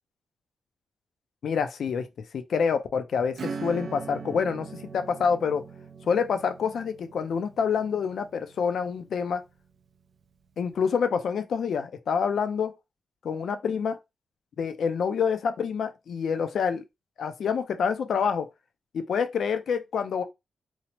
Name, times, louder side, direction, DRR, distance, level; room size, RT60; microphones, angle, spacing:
voice 1, 1.4-2.1 2.3-5.6 6.1-9.4 10.6-12.7 13.2-14.0 14.6-16.8 17.2-18.5 18.9-20.2, left 6 dB, 70° left, 0.4 m, -27 dB
Acoustic guitar / Strum, 3.3-9.6, right 5 dB, 60° right, 0.3 m, -41 dB
2.9 x 2.0 x 2.9 m
cardioid pair, 105°, 0 cm